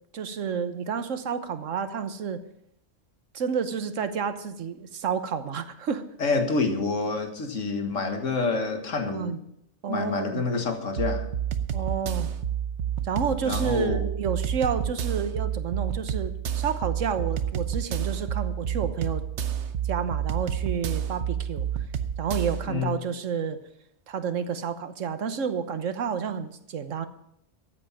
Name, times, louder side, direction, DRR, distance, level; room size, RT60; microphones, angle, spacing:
voice 1, 0.1-2.4 3.3-6.0 9.0-9.4 9.8-10.5 11.7-12.3 13.0-19.2 19.9-21.7 22.2-23.6 24.1-27.1, right 6 dB, 85° right, 10 dB, 1.4 m, -30 dB
voice 2, 6.2-9.3 9.9-11.3 13.4-14.1 22.7-23.0, left 4 dB, 90° left, 6 dB, 2.0 m, -27 dB
sound 1, 11.0-22.7, right 9 dB, 65° right, 1.1 m, -29 dB
14.0 x 8.6 x 7.3 m, 0.75 s
omnidirectional pair, 1.3 m